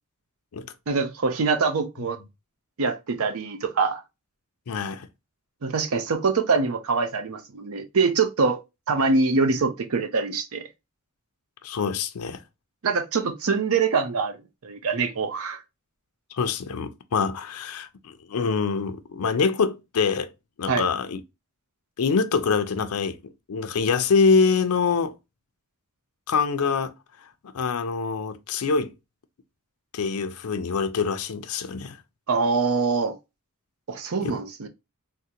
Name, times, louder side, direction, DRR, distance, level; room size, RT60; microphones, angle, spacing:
voice 1, 0.9-2.2 2.8-4.0 5.6-8.6 8.9-10.6 12.8-14.4 14.6-15.6 20.7-20.9 32.3-33.2 33.9-34.7, right 4 dB, 70° right, 0.6 m, -24 dB
voice 2, 4.7-5.1 11.6-12.4 16.3-20.3 20.6-21.2 22.0-23.2 23.5-25.2 26.3-26.9 27.5-28.9 29.9-32.0 34.2-34.4, left 5 dB, 80° left, 0.5 m, -25 dB
3.6 x 2.1 x 2.8 m
head